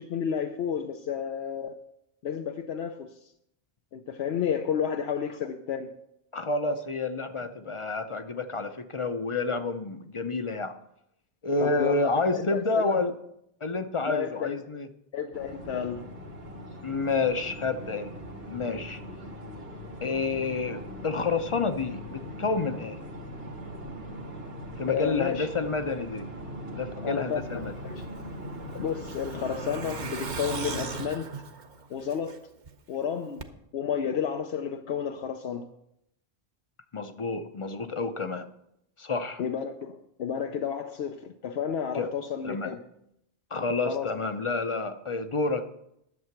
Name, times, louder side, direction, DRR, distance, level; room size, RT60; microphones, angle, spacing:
voice 1, 0.0-1.8 2.2-3.3 3.9-5.9 11.6-13.0 14.1-14.6 15.1-16.0 24.9-25.5 27.0-28.1 28.7-31.3 31.9-32.4 32.9-33.4 33.7-35.7 39.4-42.8 43.9-44.1, left 7 dB, 80° left, 5 dB, 0.9 m, -31 dB
voice 2, 6.3-10.7 11.4-13.1 13.6-14.9 16.8-18.1 18.5-19.0 20.0-23.0 24.8-26.3 26.7-27.7 36.9-38.5 39.0-39.4 41.9-42.1 42.4-42.7 43.5-45.6, left 3 dB, 35° left, 10 dB, 0.6 m, -29 dB
sound 1, 15.3-31.0, right 1 dB, 70° right, 1.9 m, -40 dB
Truck, 28.0-32.7 33.0-33.1 33.4-33.5, right 5 dB, 50° right, 0.9 m, -39 dB
11.0 x 7.5 x 5.9 m, 0.78 s
omnidirectional pair, 1.0 m